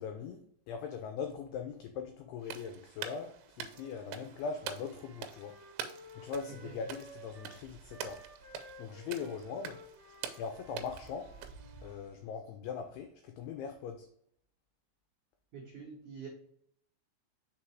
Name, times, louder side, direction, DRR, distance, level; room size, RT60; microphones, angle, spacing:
voice 1, 0.0-5.6 6.1-8.3 8.8-9.8 10.4-11.3 11.8-14.1, left 6 dB, 85° left, 5 dB, 2.3 m, -41 dB
sound 1, 2.4-12.2, right 8 dB, 85° right, 3.0 m, -46 dB
Wind instrument woodwind instrument, 3.7-12.0, equal, 40° right, 1.2 m, -55 dB
voice 2, 15.5-16.3, right 6 dB, 65° right, -5 dB, 2.0 m, -46 dB
6.1 x 4.0 x 4.6 m, 0.69 s
omnidirectional pair, 5.2 m